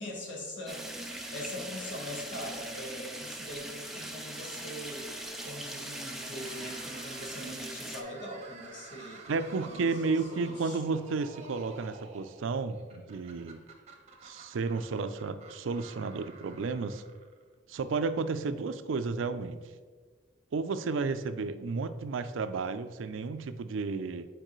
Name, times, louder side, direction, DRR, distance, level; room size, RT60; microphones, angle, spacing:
voice 1, 0.0-5.1 5.4-9.2 9.6-10.9, left 1 dB, 70° left, -1 dB, 1.6 m, -42 dB
sound 1, 0.7-8.0, right 1 dB, ahead, 0.5 m, -41 dB
sound 2, 6.3-17.5, right 3 dB, 35° right, 0.8 m, -51 dB
voice 2, 9.3-13.6 14.2-17.0 17.7-19.7 20.5-24.3, right 4 dB, 85° right, 11 dB, 0.4 m, -32 dB
8.9 x 4.5 x 3.1 m, 1.5 s
head